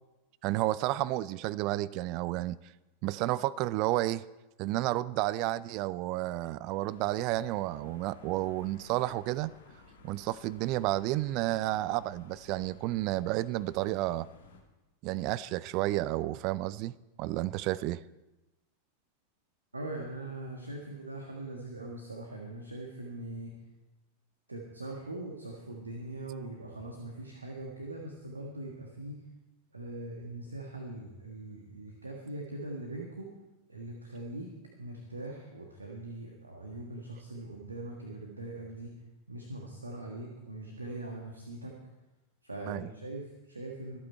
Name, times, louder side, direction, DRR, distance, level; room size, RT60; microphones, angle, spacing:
voice 1, 0.4-2.6 3.0-4.2 4.6-9.5 10.0-14.3 15.0-16.9 17.2-18.0 42.7-42.9, right 16 dB, 40° right, 0.4 m, -31 dB
sound 1, 6.7-14.6, left 4 dB, 65° left, 2.0 m, -56 dB
voice 2, 19.7-23.6 24.5-29.2 29.7-33.3 33.7-34.5 34.8-39.0 39.3-41.8 42.4-44.0, right 2 dB, 80° right, 1.5 m, -41 dB
24.0 x 8.6 x 4.4 m
figure-of-eight pair, 90°, 0 cm